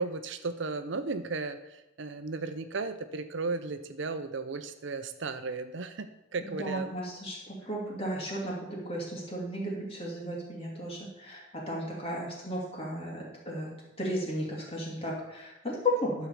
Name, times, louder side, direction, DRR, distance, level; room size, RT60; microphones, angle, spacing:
voice 1, 0.0-6.9, right 3 dB, 65° right, 10 dB, 0.6 m, -35 dB
voice 2, 6.4-13.7 14.0-16.3, equal, 30° left, -3 dB, 2.6 m, -34 dB
12.5 x 4.6 x 7.0 m, 0.96 s
head